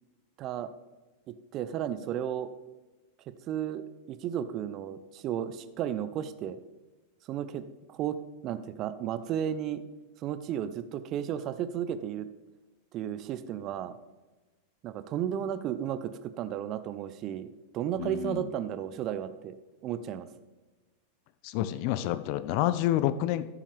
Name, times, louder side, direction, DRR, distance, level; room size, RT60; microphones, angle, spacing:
voice 1, 0.4-0.7 1.3-2.5 3.5-6.6 7.3-8.2 8.4-9.8 10.2-12.3 12.9-13.9 14.8-17.5 17.7-19.6 19.8-20.3, right 10 dB, 35° right, 12 dB, 0.7 m, -33 dB
voice 2, 18.0-18.4 21.4-23.5, left 13 dB, 45° left, 13 dB, 0.6 m, -28 dB
15.0 x 7.4 x 3.5 m, 1.2 s
figure-of-eight pair, 90°, 0 cm